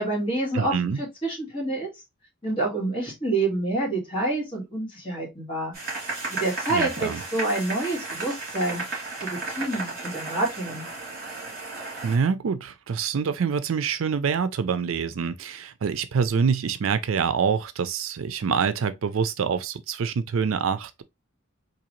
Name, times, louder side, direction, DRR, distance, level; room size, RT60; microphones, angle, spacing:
voice 1, 0.0-1.9 2.4-5.7 6.3-10.9, right 2 dB, 25° left, 1.8 m, -28 dB
voice 2, 0.5-1.0 6.7-7.2 12.0-21.0, right 6 dB, 70° right, 0.4 m, -26 dB
sound 1, 5.7-12.2, right 3 dB, 45° right, 2.5 m, -34 dB
3.9 x 2.8 x 3.0 m
head